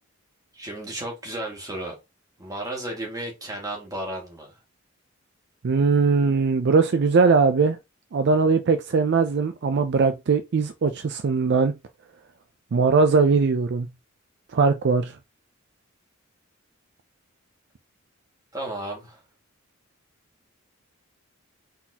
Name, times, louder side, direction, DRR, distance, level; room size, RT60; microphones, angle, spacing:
voice 1, 0.5-2.0 2.4-4.5 18.5-19.2, right 1 dB, 15° right, 1.8 m, -33 dB
voice 2, 5.6-7.8 8.1-11.7 12.7-13.9 14.5-15.2, right 4 dB, 55° right, 0.4 m, -20 dB
4.1 x 4.0 x 2.8 m
head